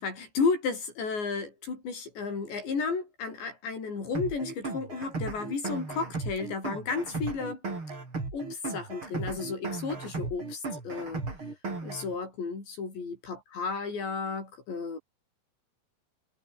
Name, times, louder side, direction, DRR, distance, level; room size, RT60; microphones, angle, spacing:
voice 1, 0.0-7.6 8.3-11.2 11.8-15.0, left 4 dB, 75° left, 9.4 m, -33 dB
sound 1, 4.1-12.1, right 3 dB, 30° right, 6.2 m, -36 dB
omnidirectional pair, 5.1 m